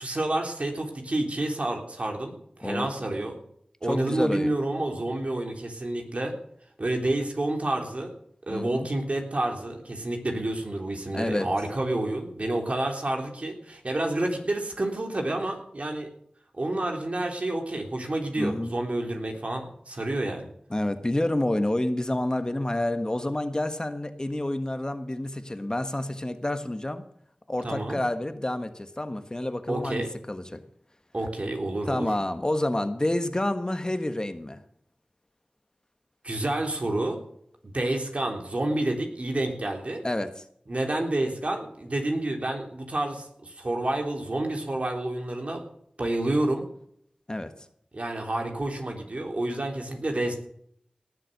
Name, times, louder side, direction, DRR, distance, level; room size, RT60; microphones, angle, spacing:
voice 1, 0.0-3.4 3.8-6.3 6.8-8.1 8.5-16.1 16.5-20.4 27.6-28.0 29.7-30.1 31.1-32.1 36.2-37.2 37.6-40.0 40.7-45.6 46.0-46.7 47.9-50.4, right 1 dB, 55° right, 3 dB, 3.5 m, -29 dB
voice 2, 2.6-3.1 3.8-4.5 8.5-8.9 11.1-11.5 18.4-18.7 20.7-27.0 27.5-30.6 31.9-34.6 40.0-40.3 47.3-47.5, left 1 dB, 30° left, 9 dB, 1.4 m, -29 dB
18.5 x 7.7 x 6.7 m, 0.68 s
wide cardioid pair, 45°, 3 cm